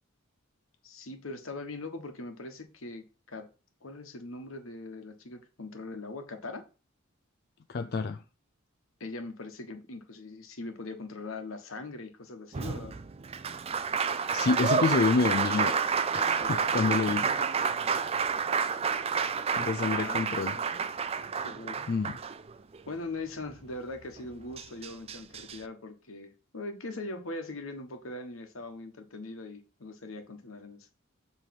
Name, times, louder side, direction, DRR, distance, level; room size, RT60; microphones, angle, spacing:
voice 1, 0.8-3.5 3.8-6.6 9.0-12.9 16.4-17.5 19.8-20.2 20.6-20.7 21.4-21.8 22.9-30.9, left 2 dB, 75° left, 1.4 m, -41 dB
voice 2, 7.7-8.2 14.3-15.8 16.1-17.3 19.6-20.6 21.9-22.2, left 4 dB, 50° left, 0.4 m, -28 dB
Applause, 12.5-22.8 24.2-24.3 24.6-25.6, right 6 dB, 30° right, 0.4 m, -29 dB
7.4 x 3.4 x 5.9 m
head